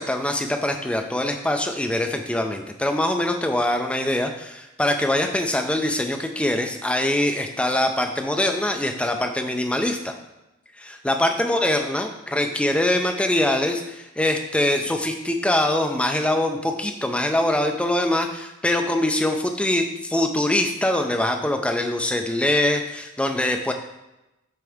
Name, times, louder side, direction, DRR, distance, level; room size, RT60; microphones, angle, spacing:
voice 1, 0.0-10.1 10.8-23.7, left 1 dB, 5° left, 4 dB, 0.4 m, -23 dB
7.7 x 3.7 x 3.5 m, 0.96 s
head